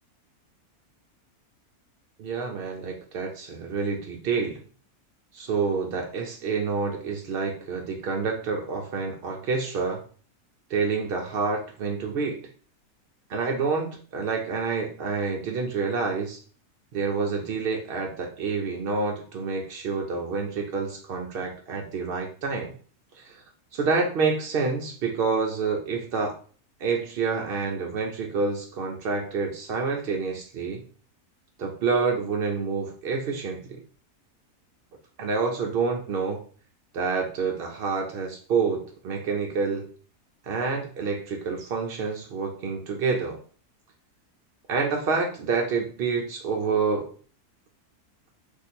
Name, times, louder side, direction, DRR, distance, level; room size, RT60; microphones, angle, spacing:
voice 1, 2.2-4.6 5.3-10.0 10.7-12.5 13.3-16.4 16.9-22.7 23.2-23.4 23.7-26.3 26.8-30.8 31.6-33.8 35.2-36.4 36.9-39.9 40.4-43.4 44.7-47.1, right 4 dB, 75° right, 1 dB, 0.5 m, -28 dB
2.6 x 2.5 x 4.2 m, 0.42 s
omnidirectional pair, 1.6 m